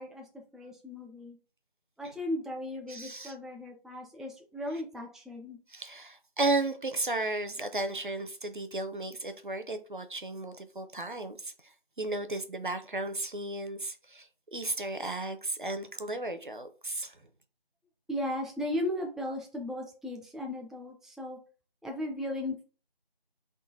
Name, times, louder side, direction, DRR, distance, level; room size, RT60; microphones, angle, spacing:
voice 1, 0.0-1.4 2.0-5.6 18.1-21.4 21.8-22.6, left 1 dB, ahead, 0.4 m, -36 dB
voice 2, 2.9-3.3 5.7-11.7 12.0-17.2, right 2 dB, 55° right, 0.5 m, -34 dB
3.7 x 2.5 x 3.9 m
figure-of-eight pair, 180°, 30 cm